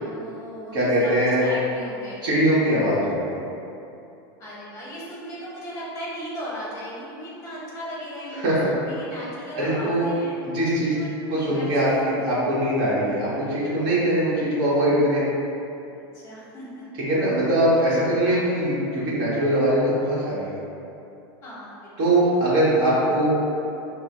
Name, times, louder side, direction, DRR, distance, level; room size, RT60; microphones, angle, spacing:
voice 1, 0.0-2.2 4.4-10.3 10.8-12.1 13.0-13.1 15.9-16.8 17.8-17.9 18.2-18.5 21.4-21.9, equal, 20° left, -6 dB, 1.0 m, -37 dB
voice 2, 0.7-1.4 2.2-3.3 8.3-8.7 9.6-10.1 10.4-10.9 11.3-15.2 16.9-20.5 22.0-23.5, right 1 dB, 35° right, -8 dB, 1.2 m, -22 dB
5.6 x 2.1 x 3.0 m, 2.8 s
supercardioid pair, 170°, 13 cm